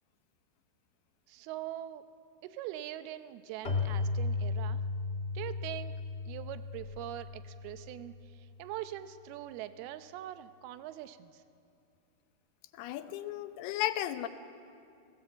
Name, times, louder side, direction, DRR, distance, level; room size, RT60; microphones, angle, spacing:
voice 1, 1.3-2.0 2.4-4.8 5.3-5.9 6.3-11.4, right 13 dB, 80° right, 11 dB, 2.6 m, -42 dB
Keyboard (musical), 3.6-8.1, left 3 dB, 60° left, 0.6 m, -35 dB
voice 2, 12.7-14.3, left 13 dB, 80° left, 10 dB, 2.8 m, -34 dB
29.5 x 18.0 x 7.9 m, 2.5 s
omnidirectional pair, 4.7 m